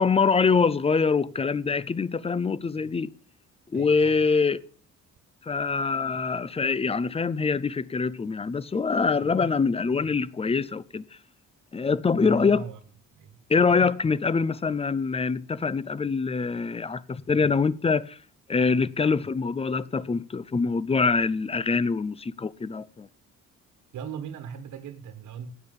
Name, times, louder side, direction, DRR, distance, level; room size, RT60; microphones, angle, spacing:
voice 1, 0.0-3.1 3.7-4.6 5.5-11.0 11.7-12.6 13.5-18.2 18.5-23.1, left 5 dB, 20° left, 0.6 m, -24 dB
voice 2, 3.7-4.2 12.2-12.8 13.1-13.4 23.9-25.5, right 7 dB, 70° right, 1.5 m, -38 dB
10.5 x 8.8 x 5.3 m
cardioid pair, 90°, 30 cm